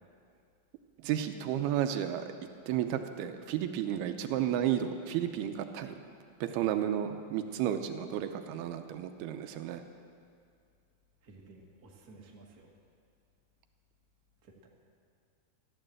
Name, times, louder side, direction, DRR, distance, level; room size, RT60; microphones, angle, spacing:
voice 1, 1.0-2.3 2.7-6.0 6.4-9.8, right 10 dB, 85° right, 7 dB, 2.7 m, -32 dB
voice 2, 11.2-12.7 14.4-14.7, right 3 dB, 35° right, -1 dB, 1.6 m, -54 dB
14.5 x 12.0 x 7.7 m, 2.3 s
omnidirectional pair, 4.5 m